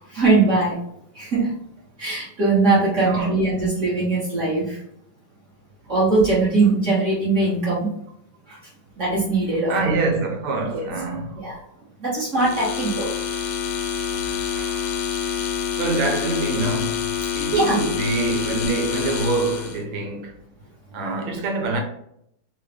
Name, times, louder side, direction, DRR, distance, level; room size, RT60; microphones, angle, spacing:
voice 1, 0.1-0.8 1.1-1.5 2.0-4.8 5.9-7.9 8.5-8.6 9.0-9.7 10.7-10.8 11.4-11.6 12.0-13.1 17.5-17.8, right 3 dB, 45° right, 1.1 m, -21 dB
voice 2, 3.0-3.4 9.7-11.5 14.1-15.0 15.8-20.4 20.9-21.8, right 3 dB, 85° right, 1.7 m, -25 dB
sound 1, 12.3-19.8, left 8 dB, 85° left, 1.5 m, -27 dB
3.8 x 2.3 x 3.2 m
omnidirectional pair, 2.3 m